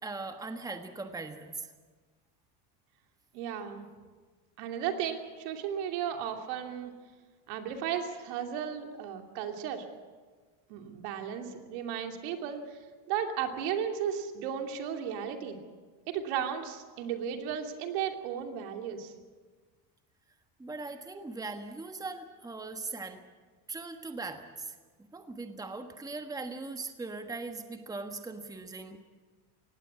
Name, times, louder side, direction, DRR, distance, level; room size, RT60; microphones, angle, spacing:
voice 1, 0.0-1.7 20.6-23.2 23.7-24.7 25.1-29.0, right 3 dB, 5° right, 6 dB, 1.4 m, -40 dB
voice 2, 3.3-3.9 4.6-6.9 7.5-9.9 10.7-12.8 13.1-15.6 16.1-19.1, right 8 dB, 80° right, 4 dB, 2.9 m, -35 dB
19.0 x 16.0 x 9.6 m, 1.4 s
cardioid pair, 130°, 49 cm